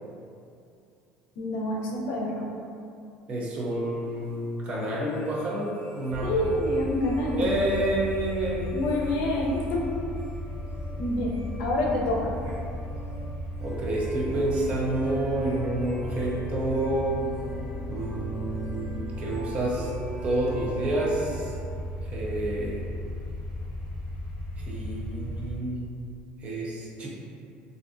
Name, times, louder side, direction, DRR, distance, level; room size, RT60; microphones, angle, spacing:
voice 1, 1.4-2.5 6.2-7.5 8.7-9.9 11.0-11.3 11.6-12.3, left 1 dB, 80° left, -2 dB, 0.6 m, -27 dB
voice 2, 3.3-6.5 7.4-8.7 12.6-12.7 13.6-17.2 17.9-19.9 20.2-21.5 22.0-22.9 24.6-25.8 26.4-27.1, right 1 dB, 30° right, -4 dB, 0.5 m, -29 dB
sound 1, 3.8-21.5, right 2 dB, 70° right, 0.9 m, -45 dB
sound 2, 6.1-25.5, left 1 dB, 10° left, 1.3 m, -36 dB
3.3 x 2.6 x 2.5 m, 2.5 s
cardioid pair, 155°, 4 cm